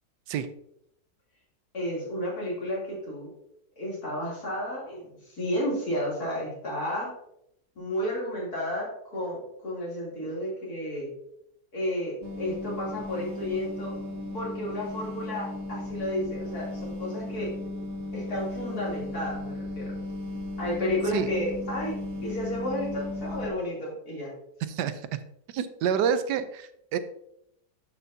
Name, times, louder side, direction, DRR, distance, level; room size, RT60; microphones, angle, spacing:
voice 1, 1.7-3.3 3.8-7.1 7.8-11.1 11.7-13.9 14.3-17.5 18.1-20.0 20.6-24.3, left 1 dB, 65° left, -5 dB, 3.5 m, -32 dB
sound 1, 12.2-23.5, left 2 dB, 50° right, 2.2 m, -36 dB
voice 2, 24.7-25.1 25.5-27.0, right 7 dB, 85° right, 12 dB, 1.2 m, -28 dB
10.5 x 6.0 x 2.7 m, 0.77 s
omnidirectional pair, 1.8 m